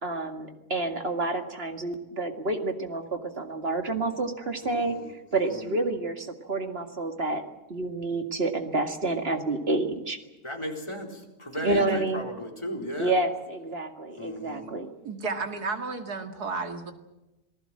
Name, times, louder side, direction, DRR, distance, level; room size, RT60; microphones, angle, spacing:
voice 1, 0.0-5.0 5.3-7.4 7.7-10.2 11.6-12.2 13.0-14.9, right 2 dB, 40° right, 5 dB, 2.3 m, -29 dB
voice 2, 4.6-5.0 5.5-5.6 10.4-11.1 11.4-13.1 14.2-14.7, equal, 20° left, 1 dB, 4.1 m, -34 dB
voice 3, 15.0-16.9, right 4 dB, 90° right, 6 dB, 2.6 m, -32 dB
27.5 x 18.5 x 7.7 m, 1.0 s
omnidirectional pair, 1.6 m